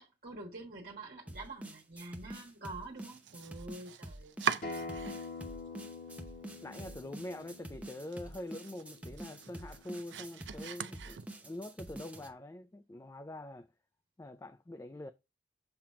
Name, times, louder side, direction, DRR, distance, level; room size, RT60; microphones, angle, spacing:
voice 1, 0.0-4.5, right 2 dB, 55° right, 1.5 m, -47 dB
sound 1, 1.3-12.3, right 1 dB, 10° right, 0.8 m, -47 dB
Domestic sounds home sounds, 2.9-5.5 5.8-6.6 6.9-7.0 7.5-7.6 7.9-11.6, right 6 dB, 80° right, 0.5 m, -41 dB
Acoustic guitar, 4.6-9.8, left 3 dB, 45° left, 1.6 m, -46 dB
voice 2, 6.6-13.7 14.2-15.1, left 1 dB, 15° left, 0.3 m, -45 dB
7.6 x 2.9 x 4.8 m
head